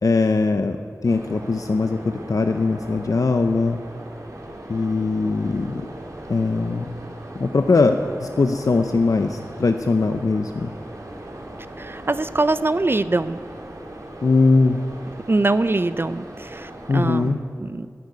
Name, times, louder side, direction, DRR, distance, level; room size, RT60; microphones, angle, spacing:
voice 1, 0.0-0.8 1.0-3.8 4.7-5.9 6.3-6.9 7.3-10.7 14.2-14.8 16.9-17.4, left 3 dB, 75° left, 6 dB, 0.6 m, -20 dB
sound 1, 1.0-17.3, right 1 dB, 70° right, 2.0 m, -39 dB
voice 2, 11.8-13.4 15.3-17.9, right 2 dB, 40° right, 13 dB, 0.4 m, -23 dB
13.0 x 6.5 x 9.5 m, 2.3 s
cardioid pair, 40°, 6 cm